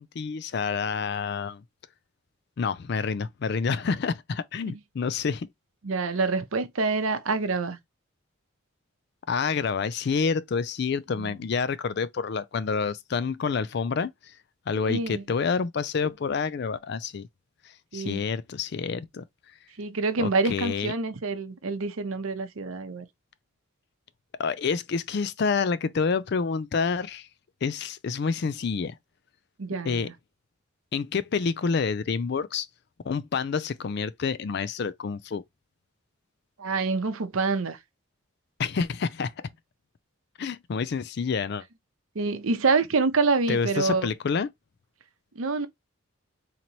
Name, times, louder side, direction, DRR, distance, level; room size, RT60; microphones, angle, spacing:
voice 1, 0.0-1.6 2.6-5.5 9.3-14.1 14.7-17.3 17.9-19.2 20.2-20.9 24.4-27.3 27.6-29.0 29.8-30.1 30.9-32.7 33.0-35.4 38.6-39.3 40.4-41.6 43.5-44.5, left 5 dB, 50° left, 0.4 m, -28 dB
voice 2, 5.8-7.8 11.2-11.3 14.8-15.2 17.9-18.2 19.8-23.0 29.6-30.1 36.6-37.8 42.1-44.1 45.4-45.7, right 4 dB, 80° right, 0.7 m, -26 dB
4.0 x 2.9 x 2.9 m
head